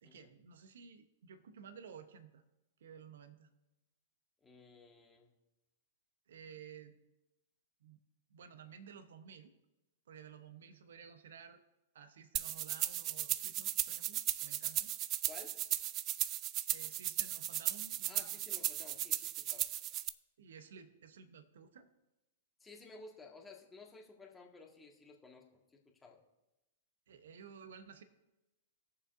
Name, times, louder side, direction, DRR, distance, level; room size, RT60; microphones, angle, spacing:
voice 1, 0.0-2.4 2.8-3.5 6.3-7.0 7.8-8.0 8.3-9.5 10.1-11.6 11.9-14.9 16.7-18.4 20.4-21.9 27.1-28.0, right 7 dB, 70° right, 10 dB, 0.9 m, -54 dB
voice 2, 4.4-5.3 15.2-15.6 18.1-19.7 22.6-26.2, left 3 dB, 15° left, -1 dB, 1.7 m, -55 dB
sound 1, 12.4-20.1, right 14 dB, 35° right, 0.3 m, -36 dB
18.5 x 6.9 x 2.6 m, 0.96 s
figure-of-eight pair, 105°, 0 cm